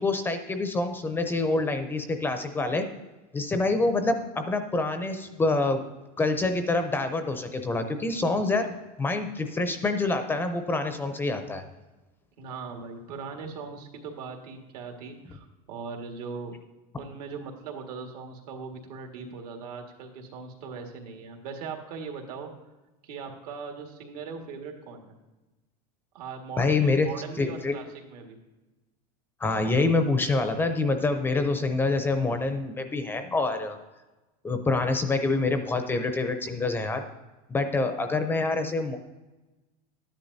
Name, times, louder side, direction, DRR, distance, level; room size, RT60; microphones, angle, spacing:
voice 1, 0.0-2.9 3.3-5.8 6.2-8.7 9.0-11.6 26.6-27.1 27.4-27.7 29.4-33.8 34.4-37.0 37.5-39.0, left 3 dB, 10° left, 7 dB, 0.4 m, -26 dB
voice 2, 12.4-16.5 17.0-22.5 23.0-25.1 26.1-28.4, right 5 dB, 80° right, 3 dB, 1.8 m, -39 dB
12.5 x 10.0 x 2.7 m, 1.1 s
supercardioid pair, 160°, 19 cm